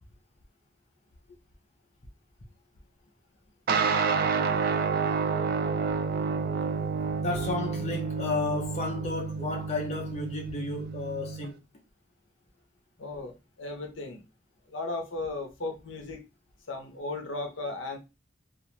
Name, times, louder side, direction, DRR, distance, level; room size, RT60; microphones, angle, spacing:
sound 1, 3.7-11.5, right 5 dB, 50° right, 0.3 m, -29 dB
voice 1, 7.2-11.7, left 3 dB, 35° left, 0.5 m, -33 dB
voice 2, 13.0-14.2 14.7-16.2 16.7-18.0, left 2 dB, 70° left, 0.7 m, -36 dB
2.4 x 2.3 x 3.0 m
head